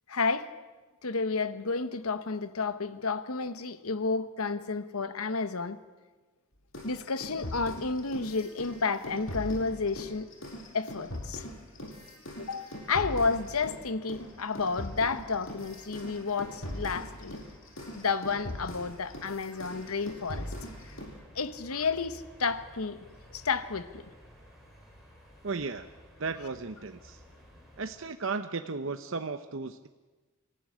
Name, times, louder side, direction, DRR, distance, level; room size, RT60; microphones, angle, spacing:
voice 1, 0.1-0.5 1.0-5.8 6.8-10.3 10.7-11.4 12.4-17.4 17.9-20.5 21.3-23.0 23.3-24.0, left 4 dB, 85° left, 1.1 m, -31 dB
sound 1, 6.7-13.8 14.1-21.2, equal, 60° left, 5.6 m, -41 dB
sound 2, 12.9-28.1, equal, ahead, 6.3 m, -55 dB
voice 2, 25.4-25.9 26.2-27.2 27.8-29.9, right 4 dB, 60° right, 0.8 m, -35 dB
25.0 x 14.5 x 10.0 m
head